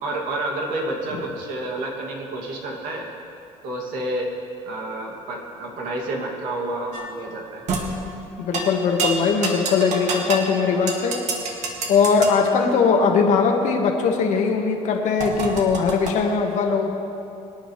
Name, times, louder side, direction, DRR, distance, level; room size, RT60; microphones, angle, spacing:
voice 1, 0.0-3.1 3.6-4.3 4.7-7.6, right 1 dB, 85° right, -1 dB, 2.6 m, -29 dB
sound 1, 6.9-7.2 7.7-7.9 8.5-8.7 9.0-10.5 10.9-12.3 15.2-16.1, right 4 dB, 60° right, 2.1 m, -27 dB
voice 2, 8.4-11.2 11.9-16.9, left 5 dB, 65° left, 2 dB, 1.7 m, -20 dB
24.0 x 10.5 x 3.3 m, 2.8 s
cardioid pair, 130°, 13 cm